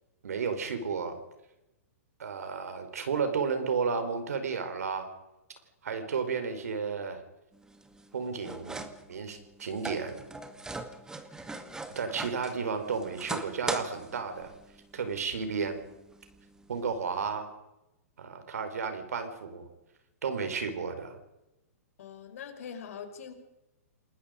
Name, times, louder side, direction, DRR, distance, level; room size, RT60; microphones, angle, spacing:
voice 1, 0.2-1.2 2.2-5.1 5.8-7.2 8.1-10.2 11.9-14.5 14.9-15.8 16.7-17.5 18.2-19.7 20.2-21.2, right 5 dB, 75° right, 8 dB, 4.8 m, -33 dB
sound 1, 7.5-17.3, right 2 dB, 10° right, 2.0 m, -42 dB
voice 2, 11.4-11.9 22.0-23.3, left 7 dB, 65° left, 6 dB, 5.0 m, -44 dB
29.0 x 20.0 x 5.2 m, 0.95 s
hypercardioid pair, 120°, 8 cm